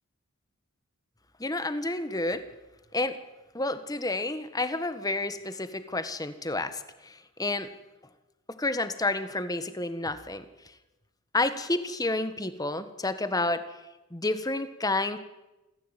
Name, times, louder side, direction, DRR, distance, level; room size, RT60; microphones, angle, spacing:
voice 1, 1.4-2.4 2.9-3.1 3.5-7.7 8.5-10.4 11.3-13.6 14.1-15.2, left 2 dB, 15° left, 11 dB, 1.4 m, -30 dB
28.0 x 15.0 x 9.1 m, 1.0 s
head